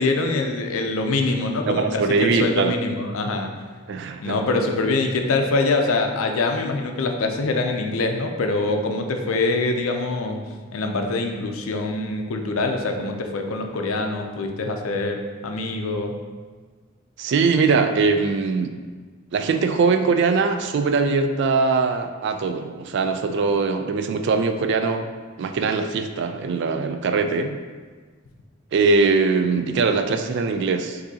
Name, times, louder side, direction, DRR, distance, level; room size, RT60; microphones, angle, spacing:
voice 1, 0.0-3.5 4.2-10.4 10.7-16.1, left 3 dB, 90° left, 4 dB, 0.5 m, -24 dB
voice 2, 1.7-2.7 3.9-4.4 17.2-18.7 19.3-25.1 25.4-27.5 28.7-31.0, right 4 dB, 55° right, 7 dB, 0.3 m, -21 dB
6.0 x 2.7 x 2.7 m, 1.5 s
head